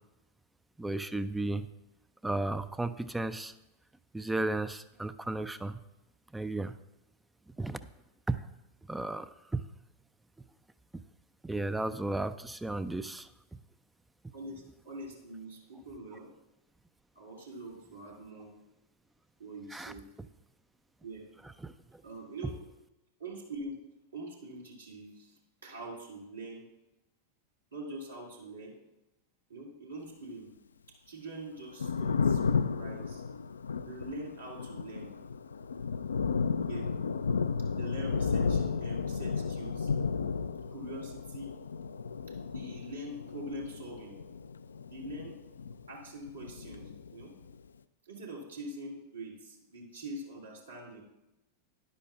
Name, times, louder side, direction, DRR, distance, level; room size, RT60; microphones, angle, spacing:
voice 1, 0.8-1.7 2.2-3.5 4.1-5.8 6.3-6.7 7.6-7.8 8.3-8.4 8.9-9.6 11.4-13.3 19.7-19.9 21.6-21.7, right 2 dB, 5° right, 12 dB, 0.3 m, -34 dB
voice 2, 14.3-16.3 17.1-18.5 19.4-20.1 21.0-21.3 22.0-22.6 23.2-23.8 24.1-26.6 27.7-28.8 29.5-30.5 31.0-33.2 33.8-35.1 36.6-36.9 37.7-39.9 40.7-41.6 42.5-44.2 44.9-45.4 45.9-47.3 48.0-51.0, right 1 dB, 75° right, -4 dB, 2.3 m, -44 dB
Thunder, 31.6-46.0 46.3-47.5, left 5 dB, 70° left, 0.3 m, -33 dB
13.0 x 10.5 x 2.4 m, 0.97 s
figure-of-eight pair, 90°, 0 cm